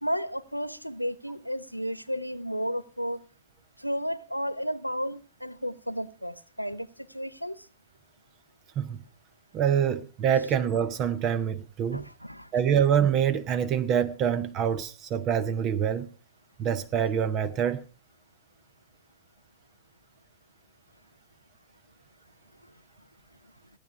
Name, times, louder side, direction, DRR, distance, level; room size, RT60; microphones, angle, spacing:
voice 1, 0.0-3.2 3.8-7.7 11.9-12.5, equal, 90° left, 0.6 m, -33 dB
voice 2, 9.5-12.0 12.5-16.1 16.6-17.8, right 8 dB, 35° right, 0.8 m, -25 dB
15.5 x 9.5 x 4.9 m
figure-of-eight pair, 90°, 0 cm